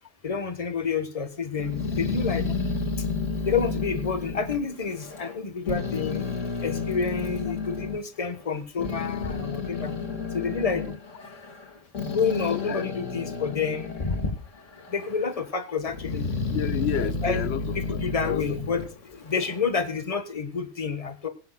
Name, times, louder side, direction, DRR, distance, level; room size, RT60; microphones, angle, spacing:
voice 1, 0.2-2.5 3.4-6.2 6.6-9.9 10.3-10.9 12.1-14.4 14.9-16.3 17.2-17.4 17.7-18.8 19.1-21.3, left 5 dB, 30° left, 1.4 m, -29 dB
Growling, 1.6-5.4 5.7-8.0 8.5-14.4 14.7-15.4 15.9-19.6, left 4 dB, 75° left, 2.3 m, -31 dB
voice 2, 12.5-12.9 16.5-18.6, left 11 dB, 60° left, 1.0 m, -31 dB
22.5 x 10.5 x 2.3 m
omnidirectional pair, 1.3 m